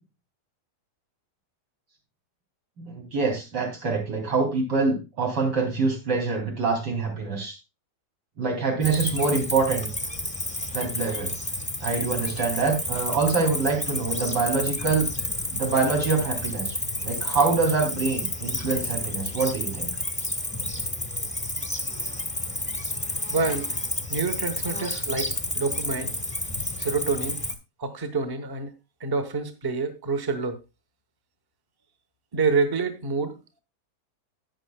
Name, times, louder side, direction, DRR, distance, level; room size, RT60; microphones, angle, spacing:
voice 1, 2.8-7.6 8.4-9.9 10.7-11.3 11.8-15.1 15.5-16.8 17.0-19.9, right 4 dB, 80° right, 3.3 m, -25 dB
Cricket, 8.8-27.5, left 1 dB, 5° left, 0.9 m, -30 dB
voice 2, 23.3-23.8 24.1-26.1 26.8-27.4 27.8-28.7 29.0-30.6 32.3-33.3, right 4 dB, 20° right, 0.6 m, -27 dB
11.0 x 9.1 x 2.2 m
omnidirectional pair, 1.8 m